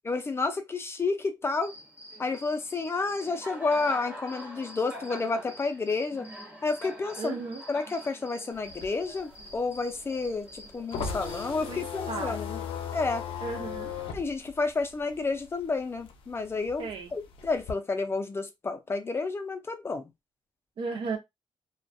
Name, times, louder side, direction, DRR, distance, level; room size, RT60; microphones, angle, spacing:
voice 1, 0.0-1.7 2.2-6.2 6.6-7.4 7.7-12.6 12.9-13.2 14.1-20.0, left 3 dB, 25° left, 0.4 m, -30 dB
Cricket, 1.5-11.5, equal, 15° right, 1.1 m, -45 dB
voice 2, 7.2-7.6 11.6-12.4 13.4-13.9 16.8-17.1 20.8-21.2, right 4 dB, 75° right, 0.8 m, -35 dB
sound 1, 8.5-15.6 16.0-17.7, left 7 dB, 90° left, 0.5 m, -37 dB
2.3 x 2.1 x 2.5 m
cardioid pair, 115°, 9 cm